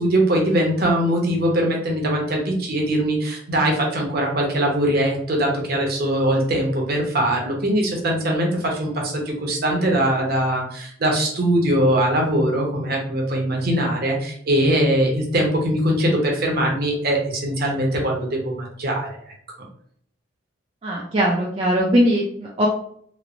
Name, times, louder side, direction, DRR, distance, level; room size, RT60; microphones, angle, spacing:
voice 1, 0.0-19.3, right 1 dB, 50° right, 0 dB, 0.7 m, -21 dB
voice 2, 20.8-22.7, equal, 30° right, -4 dB, 0.3 m, -20 dB
3.0 x 2.0 x 2.5 m, 0.64 s
head